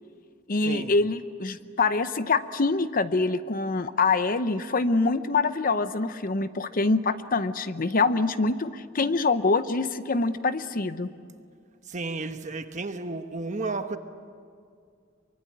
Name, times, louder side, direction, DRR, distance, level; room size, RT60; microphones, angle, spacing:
voice 1, 0.5-11.1, left 3 dB, 45° left, 0.8 m, -25 dB
voice 2, 11.9-14.0, right 3 dB, 35° right, 1.2 m, -32 dB
24.0 x 23.5 x 8.7 m
head